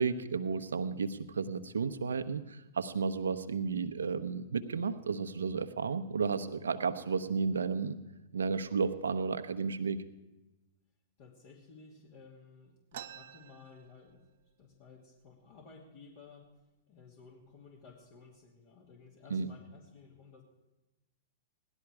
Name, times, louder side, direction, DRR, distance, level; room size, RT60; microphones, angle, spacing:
voice 1, 0.0-7.9 8.3-10.0 19.3-19.5, right 5 dB, 80° right, 10 dB, 0.9 m, -33 dB
voice 2, 11.2-14.2 14.6-16.5 16.9-20.4, left 4 dB, 55° left, -1 dB, 2.7 m, -55 dB
sound 1, 12.9-14.5 14.9-15.0 15.2-15.8 16.4-16.6 17.3-17.5 17.9-18.4, right 11 dB, 60° right, 0.6 m, -49 dB
17.0 x 12.0 x 4.8 m, 1.1 s
hypercardioid pair, 110°, 0 cm